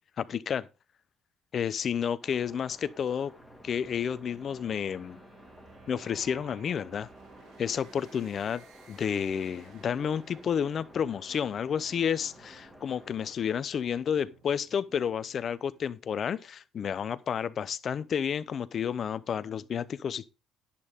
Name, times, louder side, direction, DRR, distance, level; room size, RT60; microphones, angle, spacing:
voice 1, 0.2-0.7 1.5-3.3 3.6-5.2 5.9-7.1 7.6-20.3, left 8 dB, 45° left, 0.7 m, -31 dB
sound 1, 2.2-13.3, left 1 dB, ahead, 2.2 m, -54 dB
sound 2, 3.4-15.9, right 5 dB, 70° right, 2.3 m, -58 dB
Wind instrument woodwind instrument, 3.9-8.5, right 3 dB, 40° right, 4.0 m, -56 dB
11.0 x 8.4 x 3.6 m
cardioid pair, 115°, 0 cm